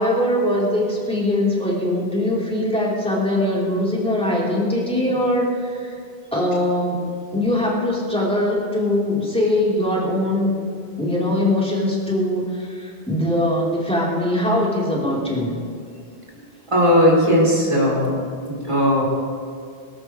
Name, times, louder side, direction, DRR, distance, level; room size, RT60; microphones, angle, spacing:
voice 1, 0.0-6.0 6.3-7.0 7.3-10.5 11.0-15.5, left 1 dB, 5° left, -6 dB, 4.8 m, -21 dB
voice 2, 16.7-19.1, equal, 30° right, -5 dB, 4.9 m, -18 dB
25.0 x 15.0 x 3.6 m, 2.2 s
omnidirectional pair, 1.0 m